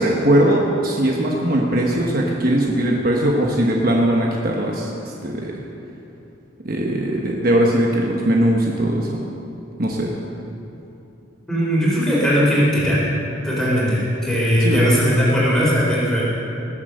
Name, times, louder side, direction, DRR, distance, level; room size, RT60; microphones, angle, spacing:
voice 1, 0.0-5.5 6.6-9.2 9.8-10.1 14.6-14.8, right 1 dB, 45° right, -1 dB, 1.2 m, -20 dB
voice 2, 11.5-13.0 13.4-16.2, equal, ahead, -7 dB, 4.0 m, -18 dB
19.5 x 7.9 x 6.5 m, 2.9 s
head